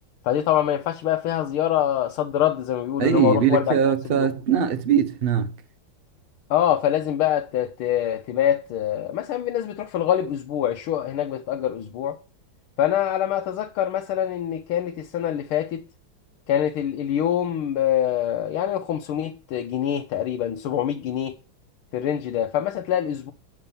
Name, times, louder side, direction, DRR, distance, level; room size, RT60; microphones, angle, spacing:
voice 1, 0.2-3.8 4.1-4.3 6.5-12.2 12.8-15.8 16.5-21.4 21.9-23.3, left 11 dB, 85° left, 1.6 m, -24 dB
voice 2, 3.0-5.5, right 8 dB, 80° right, 0.5 m, -21 dB
9.0 x 5.4 x 7.0 m
omnidirectional pair, 2.3 m